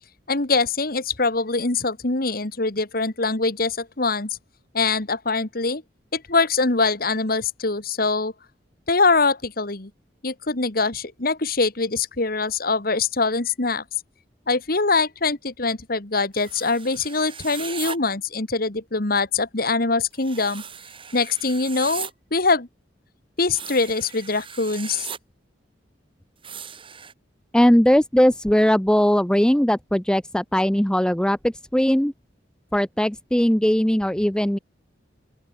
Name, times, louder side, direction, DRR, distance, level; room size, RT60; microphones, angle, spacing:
voice 1, 0.3-4.3 4.7-5.8 6.1-8.3 8.9-9.9 10.2-13.8 14.5-20.6 21.1-22.7 23.4-25.1, left 3 dB, 55° left, 1.9 m, -23 dB
sound 1, 16.3-18.0 20.2-22.1 23.4-25.2 26.4-27.1, right 7 dB, 30° right, 6.4 m, -38 dB
voice 2, 27.5-32.1 32.7-34.6, equal, 5° left, 0.6 m, -19 dB
open air
head